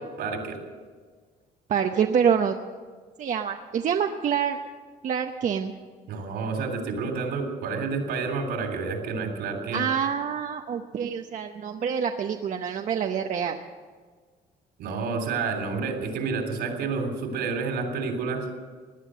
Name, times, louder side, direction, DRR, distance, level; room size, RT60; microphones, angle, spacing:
voice 1, 0.2-0.6 6.1-9.9 14.8-18.5, right 4 dB, 75° right, 5 dB, 3.4 m, -29 dB
voice 2, 1.7-2.5 3.2-4.6 5.0-5.7 9.7-13.6, right 7 dB, 50° right, 4 dB, 0.8 m, -26 dB
18.0 x 10.0 x 7.6 m, 1.5 s
cardioid pair, 110°, 17 cm